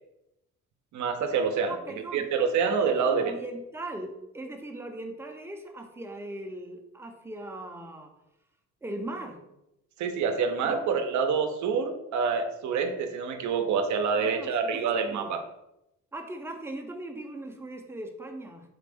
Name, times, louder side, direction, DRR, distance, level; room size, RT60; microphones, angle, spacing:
voice 1, 0.9-1.7 2.1-3.3 10.0-15.4, right 5 dB, 70° right, 6 dB, 0.6 m, -27 dB
voice 2, 1.7-2.3 2.9-8.1 8.8-9.4 10.6-10.8 14.2-15.3 16.1-18.7, right 1 dB, 10° right, 4 dB, 0.5 m, -39 dB
4.2 x 2.5 x 3.4 m, 0.86 s
cardioid pair, 90°, 30 cm